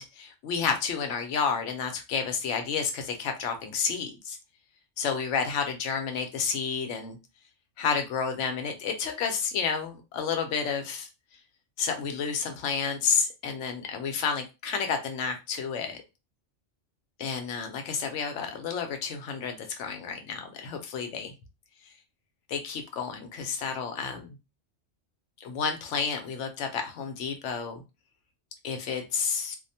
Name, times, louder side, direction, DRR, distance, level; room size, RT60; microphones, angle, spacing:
voice 1, 0.0-4.4 5.0-7.2 7.8-11.1 11.8-16.0 17.2-21.3 21.8-21.9 22.5-24.4 25.4-27.8 28.6-29.6, left 6 dB, 75° left, 0.9 m, -30 dB
2.4 x 2.1 x 2.6 m
omnidirectional pair, 1.3 m